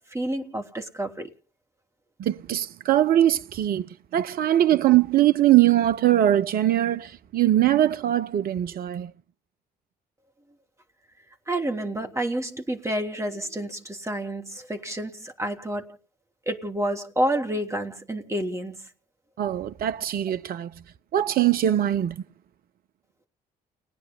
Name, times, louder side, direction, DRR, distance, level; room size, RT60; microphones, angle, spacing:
voice 1, 0.1-1.3 11.5-16.0 16.5-18.9, right 1 dB, 15° right, 3.0 m, -29 dB
voice 2, 2.2-9.1 19.4-20.7 21.1-22.2, right 12 dB, 45° right, 0.7 m, -21 dB
19.5 x 9.8 x 5.5 m
figure-of-eight pair, 45°, 21 cm